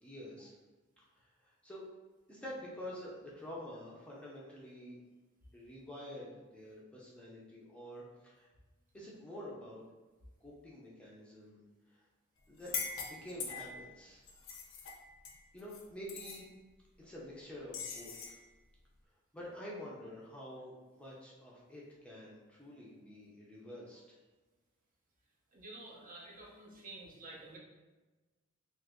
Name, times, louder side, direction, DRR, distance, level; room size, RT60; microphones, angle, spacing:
voice 1, 0.0-0.5 1.1-1.8 2.3-5.0 5.5-8.5 8.9-9.8 10.4-11.6 11.9-12.1 12.5-14.2 15.5-16.5 17.0-18.4 19.3-24.0, equal, 5° left, -6 dB, 0.5 m, -48 dB
sound 1, 12.6-13.9 14.3-15.8 16.1-16.4 17.7-18.4, left 6 dB, 65° left, 0.5 m, -42 dB
voice 2, 25.5-27.6, right 2 dB, 40° right, -3 dB, 0.7 m, -50 dB
2.9 x 2.5 x 3.4 m, 1.2 s
head